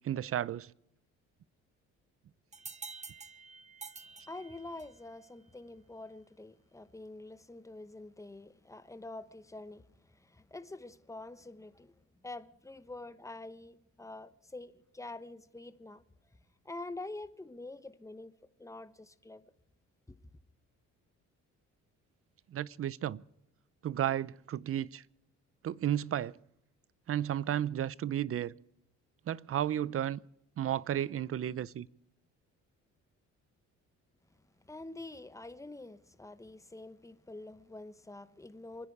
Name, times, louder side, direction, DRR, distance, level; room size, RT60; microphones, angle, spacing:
voice 1, 0.0-0.7 22.5-23.2 23.8-25.0 25.6-26.4 27.1-28.5 29.3-30.2 30.6-31.9, right 11 dB, 50° right, 0.6 m, -33 dB
sound 1, 2.5-5.1, right 4 dB, 25° right, 0.9 m, -48 dB
voice 2, 4.3-11.9 12.2-16.0 16.6-19.4 20.1-20.2 34.7-38.9, left 2 dB, 10° left, 1.0 m, -46 dB
28.0 x 10.0 x 4.9 m
cardioid pair, 90°, 30 cm